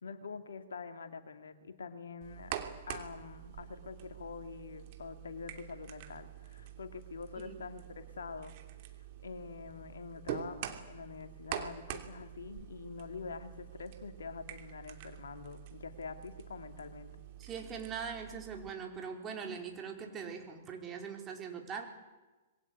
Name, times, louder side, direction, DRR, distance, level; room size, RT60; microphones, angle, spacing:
voice 1, 0.0-2.6 2.9-8.5 9.2-17.1, left 5 dB, 70° left, 7 dB, 2.5 m, -45 dB
sound 1, 2.2-18.7, right 11 dB, 45° right, 2.9 m, -46 dB
voice 2, 17.4-21.8, right 6 dB, 25° right, 3 dB, 4.5 m, -41 dB
26.0 x 22.0 x 8.5 m, 1.2 s
figure-of-eight pair, 110°, 0 cm